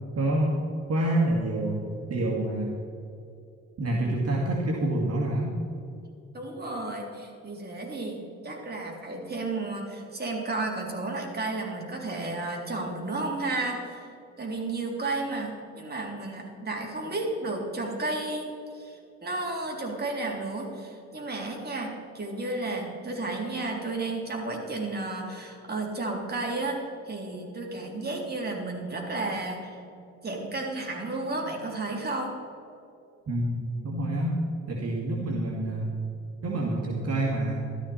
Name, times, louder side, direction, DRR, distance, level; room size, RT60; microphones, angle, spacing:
voice 1, 0.1-0.6 0.9-2.8 3.8-5.5 33.3-34.4 34.7-35.9 36.4-37.6, right 1 dB, 55° right, -2 dB, 2.1 m, -27 dB
voice 2, 6.3-29.8 30.2-32.3, right 2 dB, 30° right, 0 dB, 3.4 m, -33 dB
14.0 x 13.0 x 4.3 m, 2.6 s
cardioid pair, 90°, 30 cm